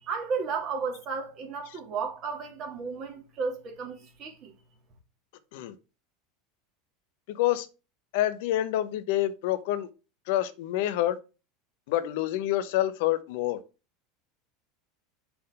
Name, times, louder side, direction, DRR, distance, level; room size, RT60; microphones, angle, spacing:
voice 1, 0.0-4.5, right 5 dB, 45° right, 2.7 m, -33 dB
voice 2, 7.3-7.7 8.1-9.9 10.3-11.2 11.9-13.6, left 13 dB, 70° left, 0.8 m, -27 dB
6.2 x 3.8 x 5.1 m
hypercardioid pair, 95°, 0 cm